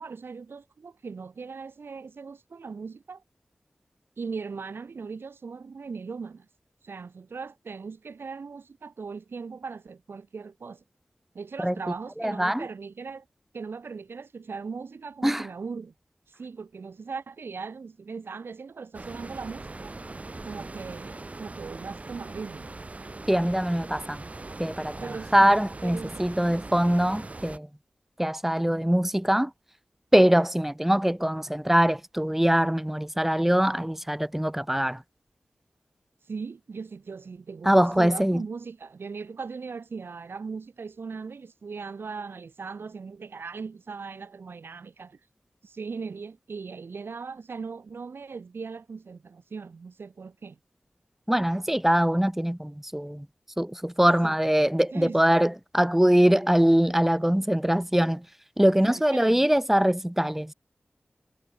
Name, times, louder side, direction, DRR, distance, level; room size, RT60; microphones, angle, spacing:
voice 1, 0.0-3.2 4.2-6.5 6.8-10.8 11.3-13.3 13.5-15.9 16.4-19.9 20.5-22.7 25.0-25.5 25.8-26.2 36.3-45.2 45.6-50.6 54.2-54.4 54.9-55.2 58.8-59.5, right 5 dB, 90° right, 7.3 m, -39 dB
voice 2, 12.2-12.7 15.2-15.5 23.3-24.2 24.6-27.7 28.2-29.5 30.1-35.0 37.7-38.4 51.3-53.3 53.6-58.2 58.6-60.5, equal, 5° right, 3.7 m, -23 dB
sound 1, 18.9-27.6, right 2 dB, 40° right, 7.2 m, -41 dB
wide cardioid pair, 85°, 4 cm